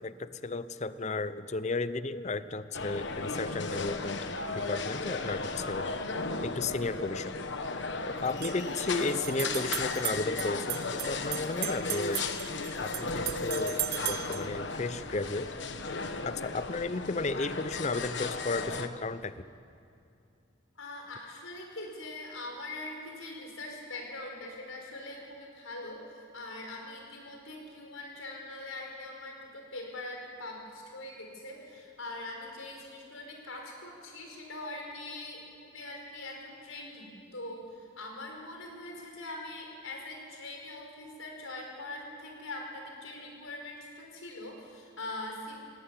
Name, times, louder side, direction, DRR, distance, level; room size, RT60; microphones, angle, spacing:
voice 1, 0.0-4.2 4.5-5.9 6.4-7.3 8.1-12.2 12.8-15.5 16.2-19.4, left 3 dB, 35° left, 14 dB, 0.6 m, -34 dB
sound 1, 2.7-18.9, left 3 dB, 60° left, 1.2 m, -35 dB
sound 2, 8.2-14.5, right 16 dB, 45° right, 0.5 m, -37 dB
voice 2, 20.8-45.6, left 2 dB, 85° left, 1 dB, 5.4 m, -42 dB
17.5 x 17.5 x 9.6 m, 2.6 s
head